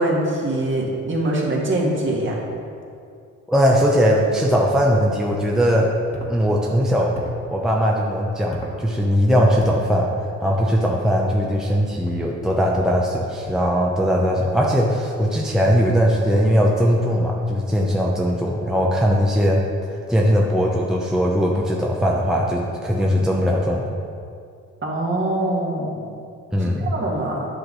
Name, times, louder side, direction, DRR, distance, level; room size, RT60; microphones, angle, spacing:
voice 1, 0.0-2.4 24.8-26.1 26.6-27.5, right 1 dB, 40° right, -3 dB, 1.9 m, -23 dB
voice 2, 3.5-5.9 6.3-7.2 7.5-10.1 10.4-19.6 20.1-23.9 26.5-26.9, equal, ahead, -2 dB, 0.8 m, -19 dB
sound 1, 6.1-6.4 7.1-7.5 8.5-8.8 9.6-9.8 11.1-11.3 11.9-12.2 12.7-13.0 13.4-13.8, equal, 20° left, 1.5 m, -36 dB
10.0 x 5.8 x 4.0 m, 2.4 s
cardioid pair, 90°, 30 cm